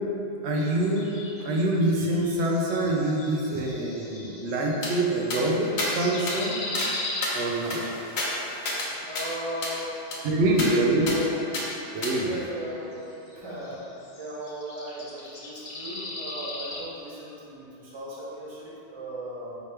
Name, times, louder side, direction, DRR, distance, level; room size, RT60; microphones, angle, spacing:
voice 1, 0.4-1.1 1.4-6.7 7.3-7.8 10.2-11.1 11.9-12.3, right 1 dB, 85° right, -1 dB, 0.9 m, -25 dB
sound 1, 0.7-5.3 5.6-7.7 9.7-16.8 17.2-17.3, left 2 dB, 50° left, 0.9 m, -40 dB
sound 2, 4.8-4.9 5.3-5.4 5.8-5.9 6.3-6.4 6.7-6.9 7.2-8.9 9.1-9.3 9.6-9.8 10.1-10.2 10.6-10.7 11.1-11.2 11.5-11.6 12.0-12.1, left 2 dB, 75° left, 1.1 m, -30 dB
voice 2, 9.0-9.9 10.4-11.4 12.2-13.0 13.3-13.8 14.1-19.6, right 1 dB, 30° right, -7 dB, 0.8 m, -37 dB
5.0 x 2.9 x 3.2 m, 2.9 s
omnidirectional pair, 1.1 m